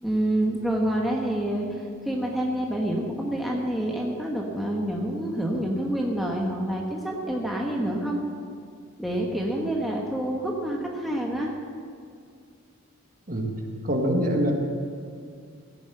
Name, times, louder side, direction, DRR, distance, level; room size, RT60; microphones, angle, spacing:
voice 1, 0.0-8.2 9.0-11.5, right 1 dB, ahead, -2 dB, 1.1 m, -27 dB
voice 2, 13.8-14.5, equal, 40° right, 1 dB, 1.6 m, -24 dB
16.0 x 7.2 x 7.7 m, 2.2 s
head